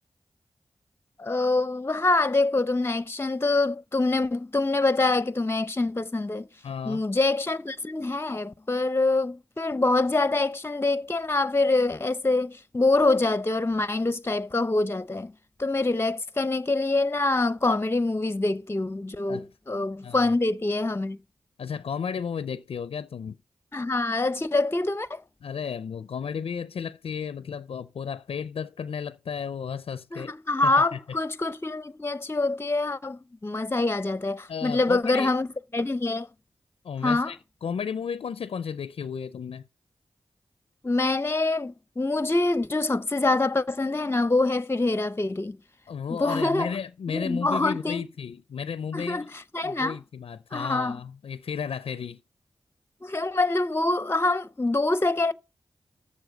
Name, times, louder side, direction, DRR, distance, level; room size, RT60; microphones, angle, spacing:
voice 1, 1.2-6.5 6.8-15.3 15.6-21.2 23.7-25.2 30.1-35.5 35.7-36.3 37.0-37.3 40.8-45.6 46.1-46.8 47.1-48.0 48.9-50.0 50.5-51.0 53.0-55.3, left 2 dB, 25° left, 0.6 m, -25 dB
voice 2, 6.6-7.0 19.3-19.5 20.0-20.3 21.6-23.4 25.4-30.3 30.6-31.0 34.5-35.3 36.8-39.6 45.9-49.3 49.6-52.2, left 7 dB, 80° left, 0.4 m, -33 dB
8.2 x 7.1 x 7.5 m
cardioid pair, 50°, 10 cm